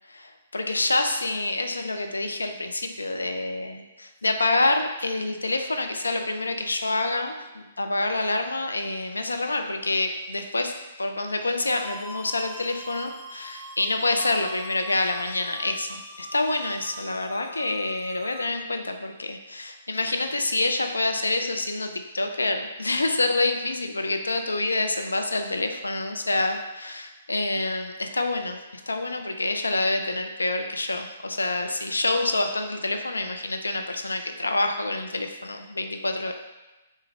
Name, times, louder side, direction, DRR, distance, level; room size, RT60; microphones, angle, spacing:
voice 1, 0.1-10.7 11.0-28.6 28.9-36.3, left 2 dB, 80° left, 5 dB, 0.3 m, -27 dB
sound 1, 11.7-18.5, right 1 dB, 5° right, 0.4 m, -42 dB
3.4 x 2.2 x 3.0 m, 1.1 s
figure-of-eight pair, 125°, 0 cm